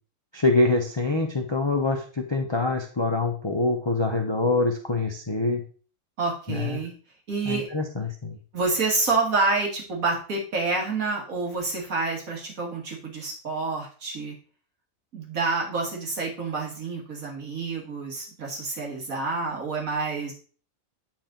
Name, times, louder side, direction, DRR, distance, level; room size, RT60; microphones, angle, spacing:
voice 1, 0.3-5.6 6.5-6.8 7.5-8.4, left 3 dB, 25° left, 3 dB, 0.6 m, -25 dB
voice 2, 6.2-6.9 7.3-7.7 8.5-14.3 15.1-20.3, right 3 dB, 85° right, -1 dB, 2.3 m, -28 dB
8.5 x 4.4 x 3.8 m, 0.39 s
omnidirectional pair, 1.4 m